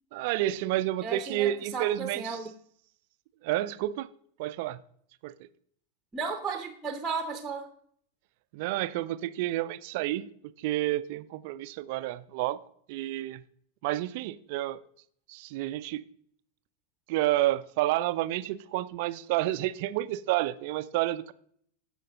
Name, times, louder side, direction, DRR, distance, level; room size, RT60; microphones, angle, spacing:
voice 1, 0.1-2.4 3.4-4.1 4.4-4.8 5.2-5.5 8.5-10.3 10.6-12.6 12.9-13.4 13.8-14.8 15.3-16.0 17.1-21.3, right 15 dB, 50° right, 14 dB, 0.5 m, -30 dB
voice 2, 1.0-2.5 6.1-7.7, right 5 dB, 15° right, 6 dB, 0.9 m, -34 dB
15.0 x 5.2 x 3.8 m, 0.62 s
figure-of-eight pair, 90°, 0 cm